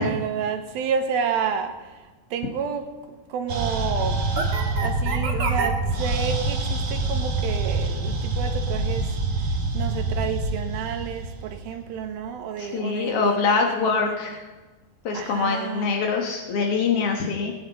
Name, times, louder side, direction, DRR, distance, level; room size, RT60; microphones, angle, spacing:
voice 1, 0.0-2.0 2.3-4.2 4.8-9.1 9.7-14.4 15.1-16.0, right 7 dB, 75° right, 5 dB, 2.9 m, -30 dB
sound 1, 3.5-12.0, right 2 dB, 50° right, 2.6 m, -26 dB
voice 2, 12.6-14.4 15.0-17.5, left 4 dB, 75° left, 2 dB, 1.3 m, -24 dB
20.5 x 9.5 x 4.0 m, 1.2 s
omnidirectional pair, 4.5 m